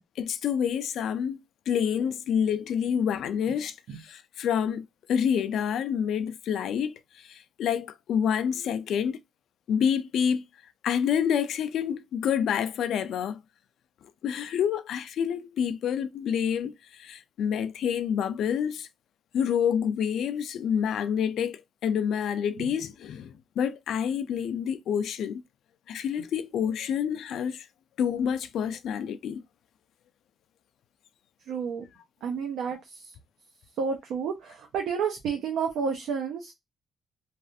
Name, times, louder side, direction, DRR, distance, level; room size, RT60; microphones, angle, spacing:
voice 1, 0.2-1.4 1.7-9.2 9.7-10.4 10.8-13.4 14.2-18.9 19.3-25.4 25.9-27.7 28.0-29.4, left 8 dB, 75° left, 0.4 m, -28 dB
voice 2, 31.5-31.8 32.2-33.1 33.8-36.5, right 6 dB, 85° right, 0.6 m, -30 dB
3.2 x 2.4 x 2.6 m
cardioid pair, 145°, 0 cm